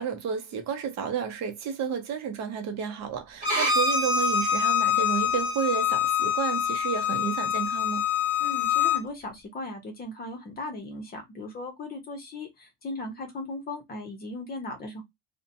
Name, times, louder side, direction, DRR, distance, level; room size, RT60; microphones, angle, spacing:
voice 1, 0.0-8.0, right 7 dB, 50° right, 0.6 m, -31 dB
Bowed string instrument, 3.4-9.0, left 6 dB, 25° right, 1.3 m, -25 dB
voice 2, 8.4-15.0, left 2 dB, 25° left, 0.7 m, -37 dB
2.7 x 2.1 x 2.6 m
cardioid pair, 180°, 36 cm